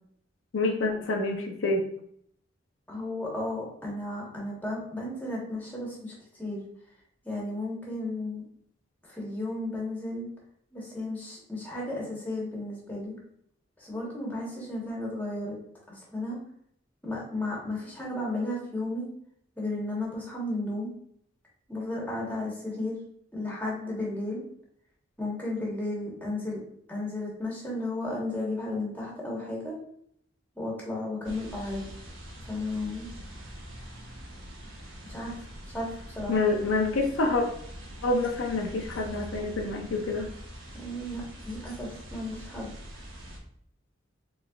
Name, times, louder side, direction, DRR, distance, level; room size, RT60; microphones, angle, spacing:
voice 1, 0.5-1.9 36.3-37.4 38.0-40.3, left 2 dB, 85° left, 2 dB, 0.6 m, -27 dB
voice 2, 2.9-6.6 7.2-8.4 9.1-10.3 10.7-13.2 13.8-15.6 15.9-16.4 17.0-19.1 19.6-20.9 21.7-23.0 23.3-24.4 25.2-26.6 26.9-29.8 30.5-31.9 32.4-33.1 35.1-35.3 35.7-36.4 40.7-42.7, left 2 dB, 10° left, -4 dB, 1.1 m, -34 dB
sound 1, 31.2-43.4, equal, 80° right, 1.0 m, -44 dB
4.1 x 3.3 x 2.3 m, 0.67 s
head